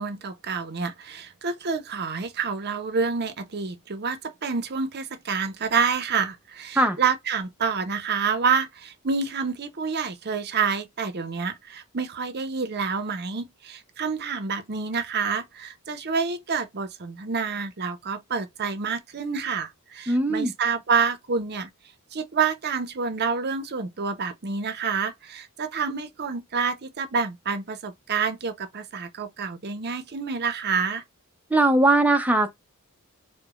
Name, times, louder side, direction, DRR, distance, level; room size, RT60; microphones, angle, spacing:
voice 1, 0.0-21.7 22.1-31.0, right 5 dB, 50° right, 0.7 m, -28 dB
voice 2, 20.1-20.5 31.5-32.5, right 2 dB, 5° right, 0.7 m, -20 dB
4.8 x 2.2 x 2.4 m
head